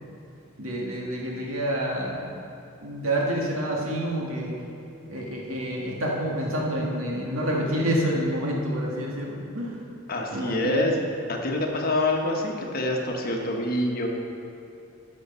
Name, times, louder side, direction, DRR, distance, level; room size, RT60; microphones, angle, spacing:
voice 1, 0.6-2.4 2.8-4.6 5.1-9.8 10.3-10.8, equal, 85° right, -2 dB, 2.0 m, -28 dB
voice 2, 10.1-11.0 11.3-14.1, left 1 dB, 45° left, 1 dB, 1.3 m, -26 dB
13.0 x 6.5 x 5.5 m, 2.7 s
head